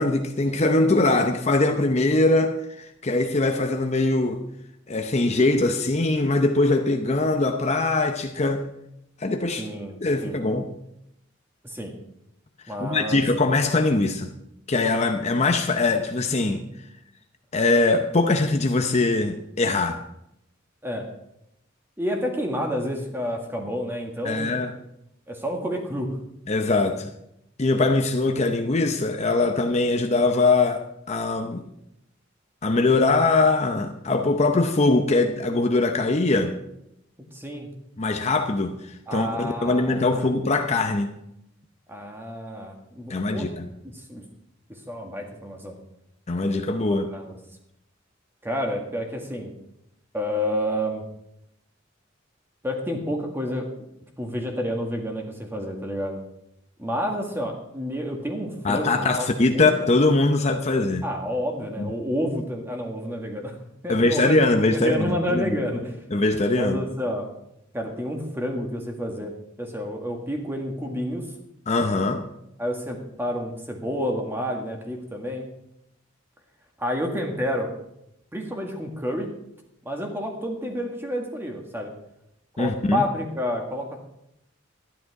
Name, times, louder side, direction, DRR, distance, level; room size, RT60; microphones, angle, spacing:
voice 1, 0.0-4.4 4.9-8.6 9.2-9.7 10.0-10.7 12.8-14.3 14.7-16.6 17.5-20.0 24.2-24.7 26.5-27.1 27.6-31.6 32.6-36.6 38.0-41.1 43.1-43.7 46.3-47.1 58.6-61.0 61.8-61.9 63.9-65.6 66.1-66.8 71.7-72.2 82.6-83.0, left 2 dB, 35° left, 5 dB, 0.7 m, -22 dB
voice 2, 9.6-10.4 11.6-11.9 12.7-13.2 20.8-21.0 22.0-24.6 25.3-26.2 37.3-37.7 39.1-40.3 41.9-43.5 43.8-44.2 44.9-45.8 46.9-47.4 48.4-49.5 50.1-51.0 52.6-53.7 54.2-56.2 56.8-59.3 59.5-59.8 61.0-63.6 63.8-66.0 66.6-67.3 67.7-69.3 69.6-71.3 72.6-75.5 76.8-77.7 78.3-79.3 79.8-81.9 82.6-84.0, equal, 10° right, 2 dB, 1.8 m, -29 dB
12.0 x 11.0 x 4.7 m, 0.80 s
head